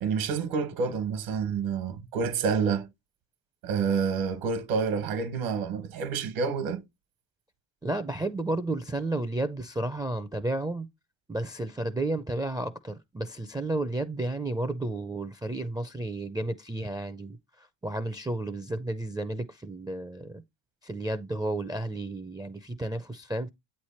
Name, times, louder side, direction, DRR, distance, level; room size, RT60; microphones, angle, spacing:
voice 1, 0.0-2.9 3.6-6.8, right 5 dB, 70° right, 1.2 m, -28 dB
voice 2, 7.8-10.9 11.3-20.4 20.8-23.5, right 2 dB, 10° right, 0.4 m, -32 dB
8.0 x 3.2 x 4.3 m
supercardioid pair, 75°, 49 cm